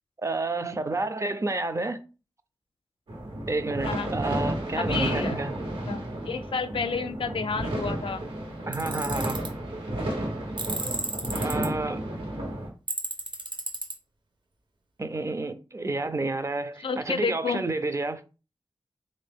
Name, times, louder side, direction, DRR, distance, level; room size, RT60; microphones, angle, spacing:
voice 1, 0.2-2.0 3.5-5.5 8.7-9.4 11.4-12.0 15.0-18.2, right 2 dB, 35° right, 0.4 m, -30 dB
sound 1, 3.1-12.7, right 1 dB, 85° right, 1.4 m, -32 dB
voice 2, 4.8-5.4 5.9-8.2 11.2-11.5 16.8-17.6, left 5 dB, 80° left, 0.4 m, -30 dB
Tools, 8.7-9.5 10.6-11.7 12.9-13.9, right 3 dB, 60° right, 0.8 m, -32 dB
3.4 x 2.7 x 3.4 m
wide cardioid pair, 60°, 9 cm